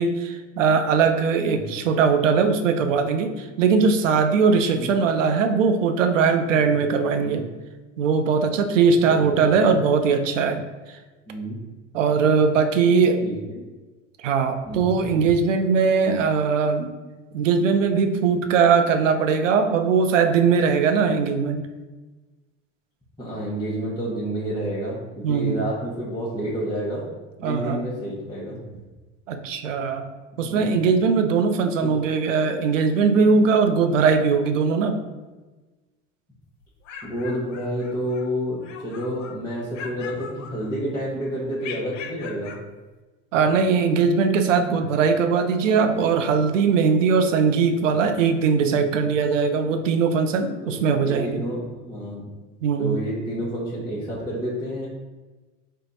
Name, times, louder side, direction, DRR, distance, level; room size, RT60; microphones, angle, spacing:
voice 1, 0.0-7.4 8.0-10.6 11.9-13.2 14.2-16.9 17.3-21.7 25.2-25.6 27.4-27.8 29.3-30.0 30.4-35.0 43.3-51.4 52.6-53.0, right 5 dB, 85° right, 7 dB, 0.5 m, -20 dB
voice 2, 9.1-9.8 11.3-11.6 13.2-13.6 14.6-14.9 15.2-15.3 23.2-27.0 27.4-28.6 30.3-30.7 31.8-31.9 37.0-42.5 44.7-44.8 50.6-52.3 52.8-54.9, equal, 10° left, -9 dB, 0.9 m, -30 dB
sound 1, 36.6-38.3 38.6-39.4 39.7-41.0 41.6-42.7, left 6 dB, 80° left, 0.5 m, -40 dB
3.4 x 2.2 x 3.9 m, 1.2 s
hypercardioid pair, 90°, 37 cm